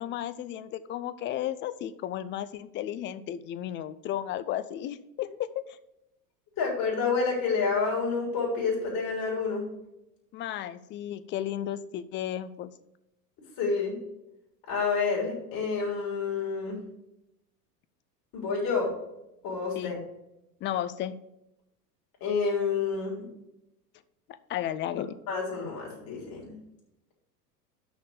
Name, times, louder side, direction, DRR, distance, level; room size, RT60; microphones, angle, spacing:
voice 1, 0.0-5.8 10.3-12.7 19.8-19.9 20.6-21.1 24.5-25.2, left 11 dB, 25° left, 15 dB, 0.4 m, -34 dB
voice 2, 6.6-9.7 13.6-14.0 14.7-16.8 18.3-18.9 19.4-20.0 22.2-23.2 25.3-26.6, left 4 dB, 45° left, -3 dB, 3.6 m, -28 dB
6.4 x 5.7 x 6.4 m, 0.87 s
hypercardioid pair, 85°, 49 cm